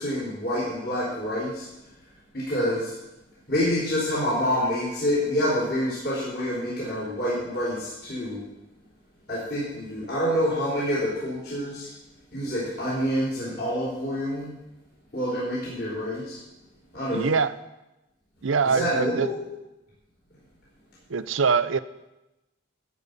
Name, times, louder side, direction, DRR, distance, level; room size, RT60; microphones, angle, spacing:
voice 1, 0.0-1.7 2.3-2.9 3.5-8.4 9.3-11.9 12.3-14.5 15.1-16.4 16.9-17.3 18.6-19.5, equal, 50° left, -8 dB, 4.3 m, -27 dB
voice 2, 17.1-17.5 18.4-19.3 21.1-21.8, right 5 dB, 85° right, 14 dB, 0.6 m, -23 dB
14.0 x 5.4 x 8.3 m, 0.97 s
head